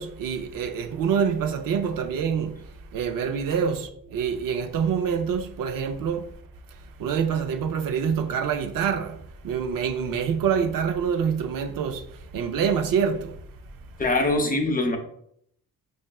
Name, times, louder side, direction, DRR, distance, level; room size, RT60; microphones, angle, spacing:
voice 1, 0.0-6.3 6.7-13.4, right 7 dB, 70° right, 0.5 m, -26 dB
voice 2, 14.0-15.0, left 2 dB, 25° left, 0.6 m, -23 dB
5.4 x 2.5 x 2.2 m
cardioid pair, 90°, 34 cm